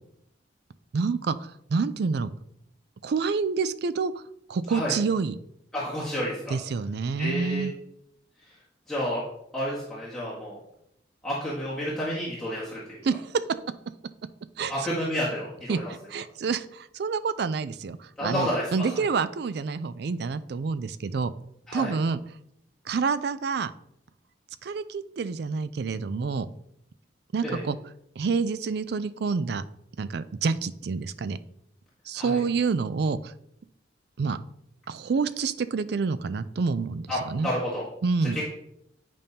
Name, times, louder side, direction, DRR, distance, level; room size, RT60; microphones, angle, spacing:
voice 1, 0.9-2.3 3.0-4.1 4.5-5.4 6.5-7.7 13.0-13.4 14.6-14.7 15.7-21.3 21.7-22.2 22.9-23.7 24.6-26.5 27.3-27.8 28.2-29.6 30.0-31.4 32.1-33.3 34.2-34.4 34.9-37.5 38.0-38.4, right 4 dB, 60° right, 13 dB, 0.4 m, -28 dB
voice 2, 5.7-6.5 7.2-7.7 8.9-9.2 9.5-10.6 11.2-13.0 14.7-15.9 18.2-18.9 21.7-21.9 27.4-27.6 32.1-32.4 37.1-37.9 38.3-38.4, equal, 5° left, -9 dB, 1.6 m, -30 dB
9.1 x 5.3 x 2.8 m, 0.74 s
head